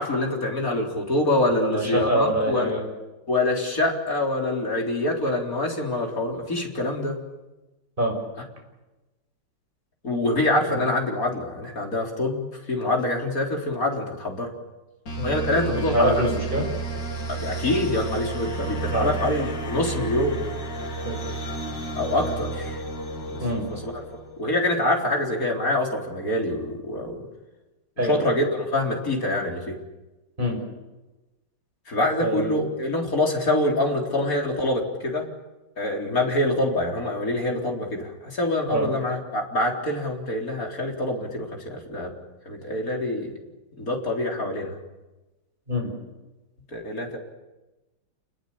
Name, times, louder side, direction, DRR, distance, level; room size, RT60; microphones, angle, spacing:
voice 1, 0.0-2.7 3.3-7.2 10.0-14.5 15.2-16.2 17.3-20.4 22.0-22.8 23.3-23.4 23.7-24.0 24.4-27.2 28.0-29.8 31.9-35.3 35.8-42.1 42.5-43.3 43.8-44.8 46.7-47.2, left 1 dB, 45° left, 0 dB, 4.5 m, -25 dB
voice 2, 1.6-2.9 8.0-8.2 15.2-15.3 15.6-16.7 18.9-19.1 21.0-21.4 23.4-23.6 28.0-28.2 30.4-30.6 32.2-32.5 38.7-38.9 45.7-45.9, equal, 25° right, 1 dB, 7.2 m, -25 dB
sound 1, 15.1-24.5, right 3 dB, 70° left, 3.5 m, -31 dB
28.0 x 20.5 x 8.7 m, 1.1 s
omnidirectional pair, 2.1 m